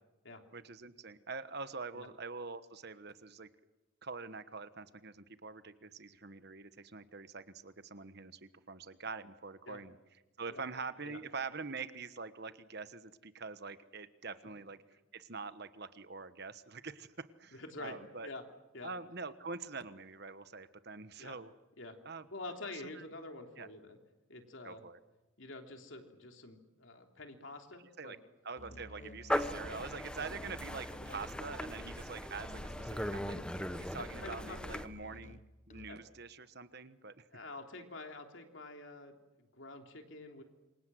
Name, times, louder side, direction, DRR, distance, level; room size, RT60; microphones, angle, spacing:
voice 1, 0.5-3.5 4.0-10.0 10.4-14.8 15.1-18.3 18.8-21.5 22.0-22.3 22.9-23.0 23.6-23.7 24.6-25.0 28.0-28.2 28.4-37.3, right 4 dB, 50° right, 12 dB, 1.3 m, -45 dB
voice 2, 17.5-18.4 18.7-18.9 21.2-21.3 21.8-22.0 22.3-24.0 24.3-24.8 25.4-28.2 28.7-28.8 34.0-34.8 35.9-36.0 37.3-39.1 39.5-40.4, left 2 dB, 60° left, 4 dB, 3.3 m, -47 dB
Musical instrument, 28.6-36.2, left 1 dB, 35° left, 1.0 m, -52 dB
sound 1, 29.3-34.9, left 1 dB, 5° left, 1.0 m, -39 dB
27.5 x 24.0 x 7.7 m, 1.1 s
head